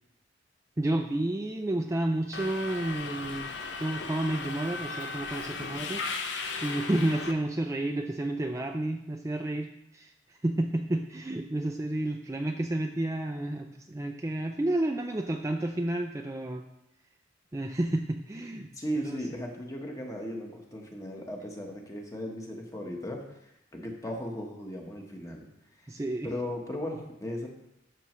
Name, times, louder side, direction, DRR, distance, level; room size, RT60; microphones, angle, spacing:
voice 1, 0.8-3.5 3.8-10.1 10.4-16.6 17.5-18.7 19.0-19.2 25.9-26.3, right 1 dB, 15° right, 3 dB, 0.4 m, -31 dB
Subway metro underground, 2.3-7.3, left 4 dB, 65° left, 0.8 m, -36 dB
voice 2, 18.7-25.5 25.8-25.9 26.2-27.5, equal, 15° left, 1 dB, 1.1 m, -37 dB
12.5 x 6.2 x 3.1 m, 0.86 s
head